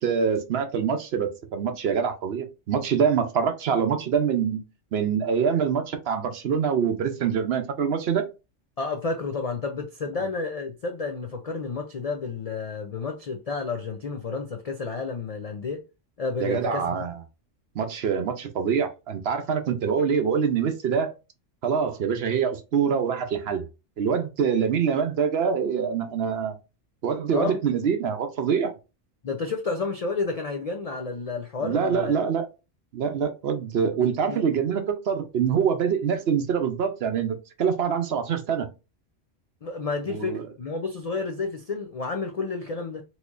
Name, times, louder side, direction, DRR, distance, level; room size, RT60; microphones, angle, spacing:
voice 1, 0.0-4.6 4.9-8.3 16.4-17.2 17.8-21.1 21.6-23.6 24.0-26.6 27.0-28.7 31.6-32.5 32.9-38.7 40.1-40.4, right 7 dB, 60° right, 0.8 m, -25 dB
voice 2, 8.8-15.8 16.2-16.8 27.3-27.6 29.2-32.2 34.3-34.4 39.6-43.0, left 4 dB, 70° left, 0.3 m, -30 dB
4.1 x 2.9 x 2.4 m
omnidirectional pair, 1.3 m